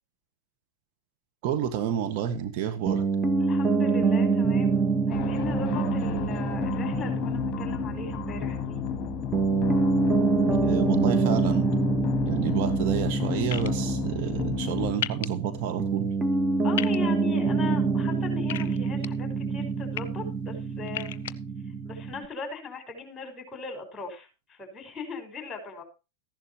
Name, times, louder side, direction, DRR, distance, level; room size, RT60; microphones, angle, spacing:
voice 1, 1.4-3.0 10.6-11.7 12.2-16.1, right 9 dB, 50° right, 6 dB, 1.6 m, -30 dB
Piano, 2.9-22.3, right 4 dB, 20° right, 1.5 m, -26 dB
voice 2, 3.4-8.8 16.6-21.2 21.6-25.8, left 4 dB, 20° left, 5 dB, 6.0 m, -39 dB
sound 1, 5.1-14.9, left 11 dB, 35° left, 1.7 m, -32 dB
sound 2, 13.5-13.7 15.0-15.3 16.8-17.0 18.5-19.1 19.7-20.0 20.9-21.3, left 11 dB, 60° left, 0.7 m, -32 dB
14.5 x 11.5 x 3.0 m, 0.30 s
figure-of-eight pair, 90°, 0 cm